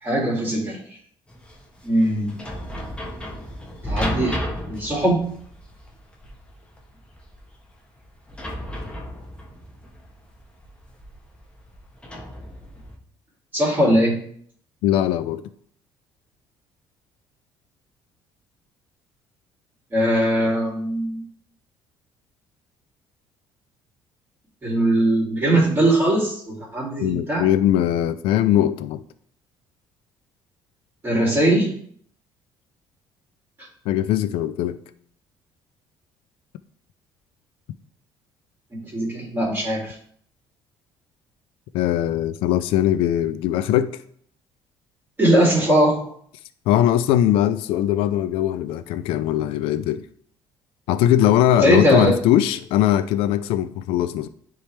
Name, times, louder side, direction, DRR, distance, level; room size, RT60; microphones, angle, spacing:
voice 1, 0.0-0.8 1.8-2.3 3.9-5.2 13.5-14.2 19.9-21.2 24.6-27.4 31.0-31.7 33.6-33.7 38.8-39.9 45.2-46.1 51.6-52.2, right 1 dB, 25° right, -9 dB, 2.6 m, -20 dB
sound 1, 1.3-13.0, equal, 10° left, 1.2 m, -34 dB
voice 2, 14.8-15.4 27.0-29.0 33.9-34.8 41.7-44.0 46.7-50.0 50.9-54.3, left 11 dB, 80° left, 12 dB, 0.4 m, -20 dB
9.7 x 3.3 x 3.3 m, 0.62 s
cardioid pair, 115°, 9 cm